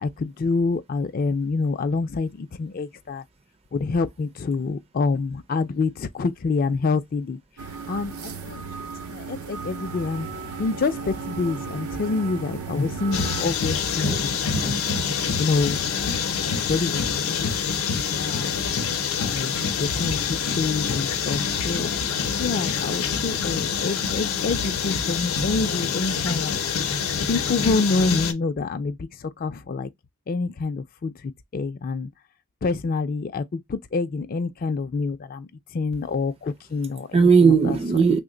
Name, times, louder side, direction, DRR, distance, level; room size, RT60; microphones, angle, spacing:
voice 1, 0.0-3.2 3.7-7.4 7.9-8.7 9.1-10.3 10.6-14.8 15.4-15.9 16.6-18.5 19.2-22.0 22.4-26.6 27.3-29.9 30.3-31.1 31.5-32.1 32.6-35.5 35.7-37.8, left 4 dB, 40° left, 0.3 m, -27 dB
sound 1, 7.6-13.4, right 5 dB, 90° right, 0.5 m, -35 dB
sound 2, 13.1-28.3, left 6 dB, 85° left, 0.6 m, -26 dB
voice 2, 14.5-15.3 37.1-38.2, right 5 dB, 30° right, 0.4 m, -19 dB
3.1 x 2.1 x 3.7 m
head